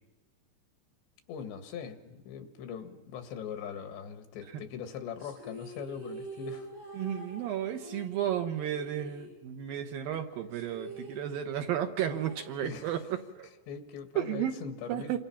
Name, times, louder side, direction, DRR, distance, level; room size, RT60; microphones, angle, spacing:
voice 1, 1.3-6.7 12.6-13.0 13.7-15.2, left 7 dB, 85° left, 6 dB, 4.0 m, -41 dB
sound 1, 5.2-9.9 10.1-10.2 10.5-13.2, right 3 dB, 85° right, 10.0 m, -46 dB
voice 2, 6.9-13.5 14.2-14.6 14.9-15.2, right 10 dB, 70° right, 6 dB, 2.5 m, -33 dB
28.5 x 25.0 x 5.8 m, 1.2 s
omnidirectional pair, 4.9 m